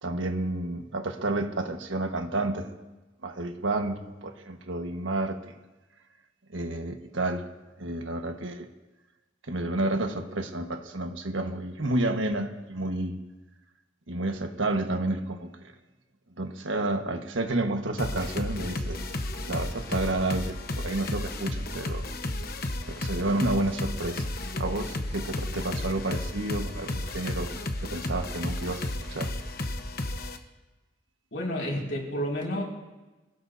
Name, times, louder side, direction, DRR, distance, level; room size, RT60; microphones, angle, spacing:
voice 1, 0.0-2.8 3.2-5.5 6.5-7.5 7.8-8.7 9.5-13.2 14.1-15.5 16.4-19.0 19.5-22.0 22.9-24.3 24.6-27.5 27.8-29.3, right 2 dB, 85° right, 5 dB, 1.5 m, -30 dB
sound 1, 18.0-30.4, left 1 dB, 50° left, 1.1 m, -33 dB
voice 2, 31.3-32.6, equal, 75° left, -3 dB, 5.5 m, -30 dB
26.0 x 17.0 x 2.7 m, 1.1 s
head